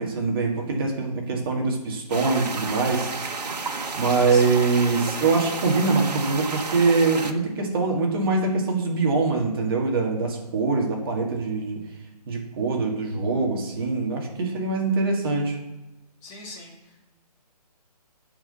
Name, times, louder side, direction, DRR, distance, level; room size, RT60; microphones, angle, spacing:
voice 1, 0.0-3.1 4.0-11.8 12.3-15.6, right 3 dB, 35° right, 0 dB, 2.0 m, -23 dB
sound 1, 2.1-7.3, right 4 dB, 85° right, 1.4 m, -32 dB
voice 2, 4.1-4.6 16.2-17.1, left 2 dB, 15° left, -4 dB, 2.1 m, -41 dB
8.8 x 6.0 x 6.9 m, 1.1 s
hypercardioid pair, 160°, 21 cm